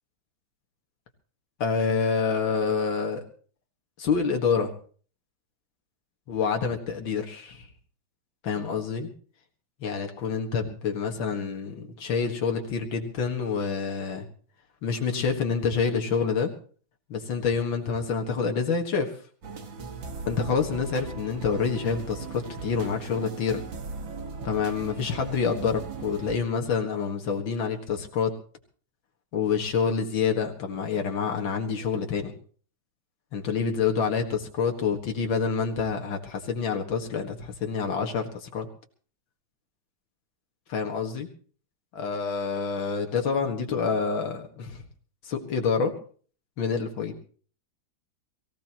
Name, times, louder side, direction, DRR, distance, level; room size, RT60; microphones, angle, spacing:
voice 1, 1.6-3.2 4.0-4.7 6.3-7.7 8.4-9.1 9.8-14.2 14.8-16.5 17.1-19.1 20.3-23.6 24.4-28.3 29.3-32.3 33.3-38.7 40.7-41.3 42.0-44.8 45.3-45.9 46.6-47.1, left 5 dB, 85° left, 3 dB, 2.5 m, -27 dB
sound 1, 19.4-26.4, right 4 dB, 75° right, 2.5 m, -38 dB
23.0 x 15.5 x 3.0 m, 0.43 s
omnidirectional pair, 2.1 m